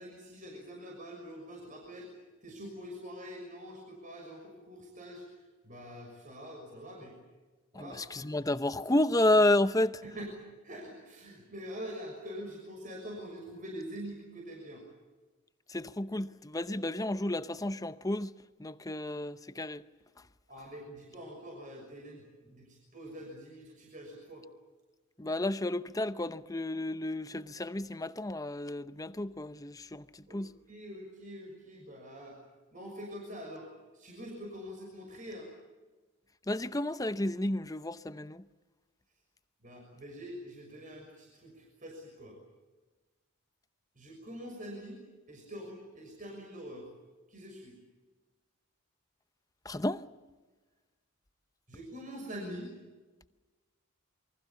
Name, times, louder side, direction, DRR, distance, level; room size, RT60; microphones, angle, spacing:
voice 1, 0.0-2.1 2.4-7.2 7.7-8.2 10.0-14.8 20.5-24.5 30.3-32.4 32.7-33.7 33.9-35.5 39.6-42.4 43.9-45.0 45.3-46.9 47.3-47.7 51.7-52.8, equal, 40° right, 6.3 m, -45 dB
voice 2, 7.7-10.0 15.7-18.3 18.6-19.8 25.2-30.5 36.5-38.4 49.6-50.0, left 1 dB, 15° left, 0.7 m, -31 dB
28.5 x 24.0 x 7.2 m
head